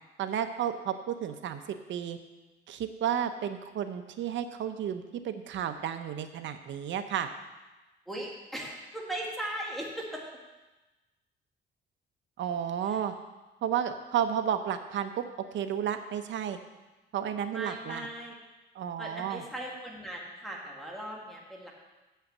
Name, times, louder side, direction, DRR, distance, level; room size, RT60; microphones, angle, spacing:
voice 1, 0.2-2.2 2.7-7.3 12.4-13.1 13.6-15.2 15.5-16.6 17.1-18.1 18.7-19.4, right 9 dB, 70° right, 8 dB, 0.8 m, -32 dB
voice 2, 8.1-10.2 12.8-13.0 17.5-18.3 19.0-21.7, right 1 dB, ahead, -3 dB, 1.9 m, -38 dB
7.6 x 5.7 x 7.3 m, 1.1 s
cardioid pair, 90°, 20 cm